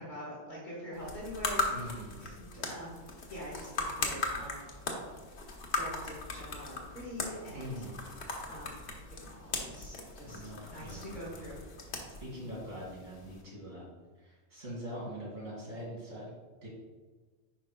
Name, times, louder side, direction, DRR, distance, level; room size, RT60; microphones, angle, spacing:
voice 1, 0.0-1.9 2.2-4.7 5.7-7.7 8.5-8.8 9.1-11.6, equal, 45° left, -6 dB, 1.7 m, -44 dB
sound 1, 0.9-13.4, left 3 dB, 75° left, 1.2 m, -39 dB
voice 2, 1.7-2.2 7.5-8.0 10.2-11.2 12.2-13.8 14.2-16.2 16.6-16.7, equal, 80° right, -6 dB, 2.5 m, -43 dB
10.0 x 4.8 x 2.2 m, 1.4 s
omnidirectional pair, 1.1 m